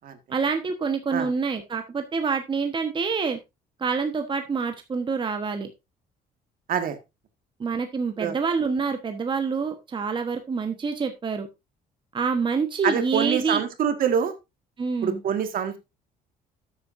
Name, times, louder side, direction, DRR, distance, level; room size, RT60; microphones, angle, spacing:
voice 1, 0.3-3.4 3.8-5.7 7.6-11.5 12.1-13.6 14.8-15.2, right 5 dB, 30° right, 1.2 m, -27 dB
voice 2, 12.8-14.3 15.0-15.8, right 8 dB, 55° right, 1.8 m, -25 dB
13.0 x 8.3 x 2.6 m
cardioid pair, 110°, 17 cm